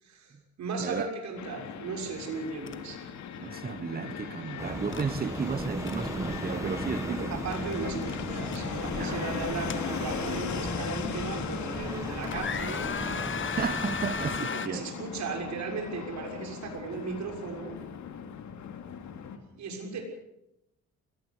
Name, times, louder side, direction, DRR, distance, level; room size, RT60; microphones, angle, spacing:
voice 1, 0.0-3.0 7.3-12.9 14.5-17.8 19.6-20.0, right 4 dB, 65° right, 6.6 m, -36 dB
Fixed-wing aircraft airplane, 1.4-19.4, left 7 dB, 70° left, 2.8 m, -38 dB
sound 1, 2.7-2.8 3.1-3.3 4.9-5.1 5.6-6.0 7.5-7.7 8.0-8.6 9.4-10.4 11.0-11.1 11.7-12.0 12.2-14.7, left 6 dB, 40° left, 1.6 m, -35 dB
voice 2, 3.4-7.4 9.0-9.3 13.4-14.9, right 5 dB, 30° right, 1.2 m, -34 dB
sound 2, 4.6-14.4, right 1 dB, 10° right, 1.5 m, -37 dB
21.5 x 17.0 x 8.3 m
cardioid pair, 90°, 30 cm